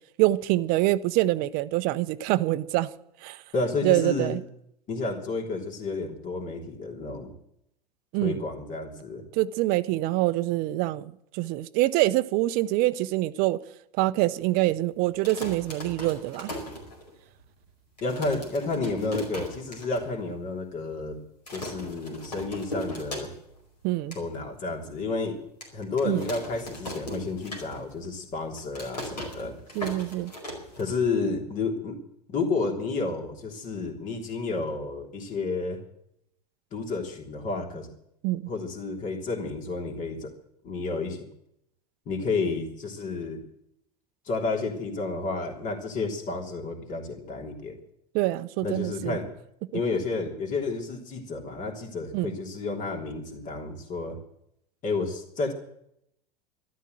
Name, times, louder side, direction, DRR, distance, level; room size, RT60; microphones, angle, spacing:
voice 1, 0.2-2.9 3.2-3.4 3.8-4.4 8.1-8.4 9.3-13.6 14.0-16.5 23.8-24.2 26.1-26.2 29.7-30.3 38.2-38.5 48.1-49.2 52.1-52.4, right 17 dB, 45° right, 0.7 m, -25 dB
voice 2, 3.5-4.4 4.9-7.3 8.2-9.2 18.0-21.2 21.5-23.3 24.1-25.4 25.7-29.5 30.8-32.0 32.3-35.8 36.7-37.9 38.5-40.3 40.6-41.2 42.0-43.4 44.2-47.8 48.6-49.3 49.7-54.2 54.8-55.5, left 3 dB, 40° left, 3.3 m, -31 dB
sound 1, 15.1-17.4 17.7-17.8 18.0-20.0 20.4-20.5 20.7-21.1 21.5-23.6 23.9-24.2 24.7-24.8 25.6-28.0 28.3-31.3, left 1 dB, 85° left, 4.9 m, -38 dB
13.0 x 12.5 x 7.9 m
figure-of-eight pair, 80°, 21 cm